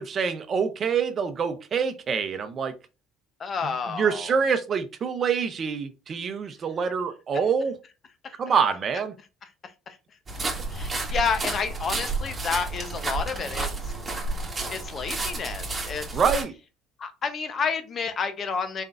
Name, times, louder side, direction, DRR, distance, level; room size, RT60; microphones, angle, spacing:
voice 1, 0.0-2.7 3.6-7.8 8.4-9.1 16.1-16.5, right 6 dB, 45° right, 0.7 m, -26 dB
voice 2, 3.4-4.4 8.2-8.4 9.6-10.0 10.7-13.9 14.7-16.0 17.0-18.8, left 5 dB, 45° left, 0.8 m, -30 dB
sound 1, 10.3-16.4, right 3 dB, 25° right, 1.5 m, -31 dB
4.4 x 3.7 x 2.5 m
supercardioid pair, 75°, 0 cm